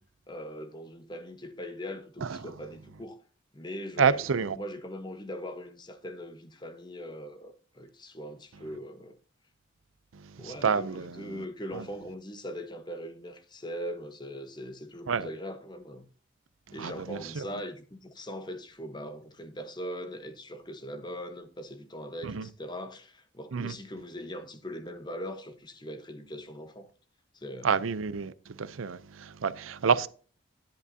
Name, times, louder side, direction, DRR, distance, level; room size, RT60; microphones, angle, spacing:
voice 1, 0.3-3.2 3.5-9.2 10.4-16.1 16.7-26.9 27.3-27.9, equal, 20° left, 1.0 m, -41 dB
voice 2, 4.0-4.6 10.2-11.4 11.7-11.8 15.1-15.3 16.8-17.4 22.2-22.5 23.5-23.7 27.6-28.3 28.6-30.1, right 6 dB, 85° right, 0.6 m, -28 dB
10.5 x 10.5 x 2.8 m
head